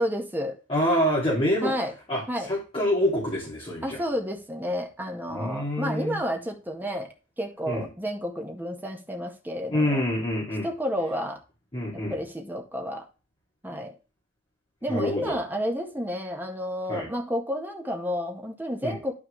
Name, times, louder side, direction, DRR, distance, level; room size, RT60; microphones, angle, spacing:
voice 1, 0.0-0.6 1.6-1.9 2.3-2.5 3.8-7.1 7.4-10.0 10.6-11.4 11.9-13.0 13.6-13.9 14.8-19.1, equal, 10° right, 2 dB, 1.7 m, -30 dB
voice 2, 0.7-1.7 2.1-4.0 5.3-6.2 7.7-7.9 9.7-10.7 11.7-12.1 14.9-15.4 16.9-17.1 18.8-19.0, left 1 dB, 30° left, -8 dB, 3.0 m, -26 dB
12.5 x 4.7 x 3.3 m, 0.32 s
head